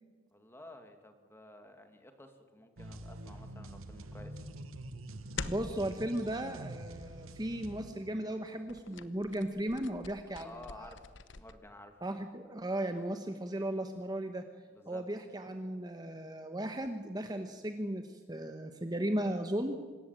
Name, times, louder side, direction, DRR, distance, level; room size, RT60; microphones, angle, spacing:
voice 1, 0.3-4.4 10.4-12.0 14.7-15.0, left 1 dB, 10° left, 6 dB, 2.1 m, -52 dB
sound 1, 2.8-7.9, right 1 dB, 90° right, 1.3 m, -46 dB
sound 2, 5.3-5.8 8.7-11.5, left 5 dB, 60° left, 1.0 m, -45 dB
voice 2, 5.5-10.9 12.0-14.4 14.9-19.8, right 1 dB, 20° right, 6 dB, 1.0 m, -36 dB
25.5 x 14.0 x 9.0 m, 1.5 s
head